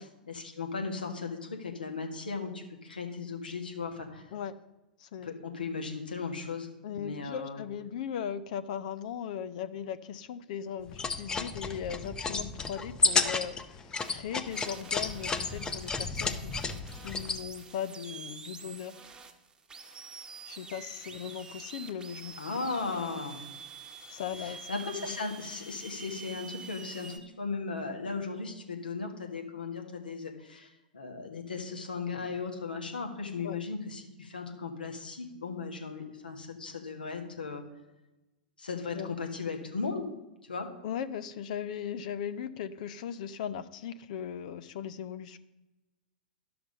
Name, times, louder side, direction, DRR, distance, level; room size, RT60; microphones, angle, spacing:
voice 1, 0.0-4.3 5.2-7.6 22.4-23.4 24.4-37.6 38.6-40.0 40.4-40.7, left 4 dB, 80° left, 3 dB, 1.6 m, -37 dB
voice 2, 6.8-19.0 20.4-22.3 22.9-23.0 24.1-24.7 25.0-25.2 33.4-33.6 38.9-39.1 40.8-45.4, left 8 dB, 55° left, 14 dB, 0.6 m, -38 dB
sound 1, 10.9-17.4, left 4 dB, 15° left, 0.7 m, -32 dB
sound 2, 14.0-14.1 14.5-27.2, right 5 dB, 15° right, 1.2 m, -47 dB
12.0 x 6.0 x 5.3 m, 1.0 s
figure-of-eight pair, 95°, 5 cm